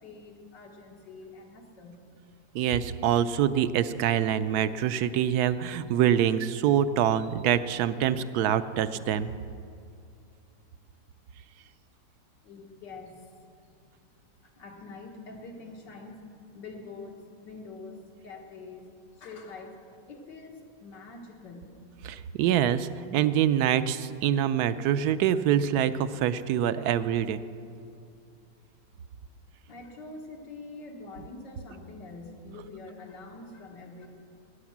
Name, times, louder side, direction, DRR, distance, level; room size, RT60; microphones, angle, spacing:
voice 1, 0.0-2.0 12.4-13.3 14.4-18.9 19.1-19.8 20.1-21.7 22.0-22.1 29.7-34.1, left 3 dB, 85° left, 0 dB, 2.2 m, -45 dB
voice 2, 2.5-9.3 22.0-27.4, right 10 dB, 70° right, 13 dB, 1.1 m, -25 dB
18.0 x 10.0 x 7.3 m, 2.4 s
omnidirectional pair, 1.8 m